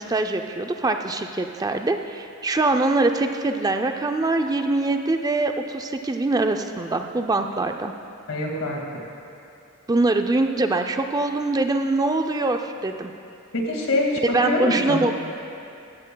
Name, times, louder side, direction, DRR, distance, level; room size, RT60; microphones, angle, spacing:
voice 1, 0.0-7.9 9.9-13.1 14.3-15.2, right 2 dB, 20° right, 5 dB, 0.4 m, -23 dB
voice 2, 8.3-8.8 13.5-15.1, left 1 dB, 85° left, -1 dB, 2.0 m, -24 dB
15.0 x 15.0 x 2.3 m, 2.7 s
head